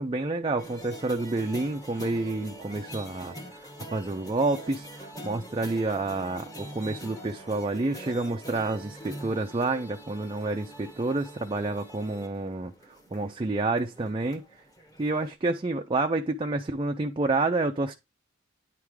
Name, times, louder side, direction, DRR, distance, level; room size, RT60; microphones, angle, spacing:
voice 1, 0.0-3.3 3.9-12.7 13.1-14.4 15.0-17.9, right 2 dB, 25° right, 0.5 m, -29 dB
sound 1, 0.6-15.3, right 1 dB, 20° left, 1.4 m, -44 dB
9.9 x 3.5 x 4.8 m
head